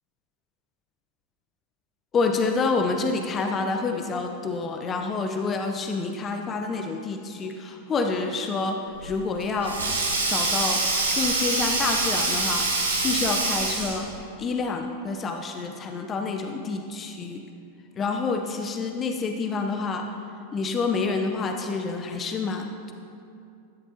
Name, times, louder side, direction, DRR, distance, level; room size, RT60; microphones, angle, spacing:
voice 1, 2.1-8.8 9.0-9.8 10.3-10.8 11.1-14.1 14.4-17.4 18.0-20.1 20.5-22.9, left 4 dB, 25° left, 4 dB, 0.7 m, -28 dB
Sink (filling or washing), 9.0-14.1, right 2 dB, 70° right, 2.5 m, -25 dB
14.0 x 11.5 x 2.9 m, 2.6 s
figure-of-eight pair, 90°, 0 cm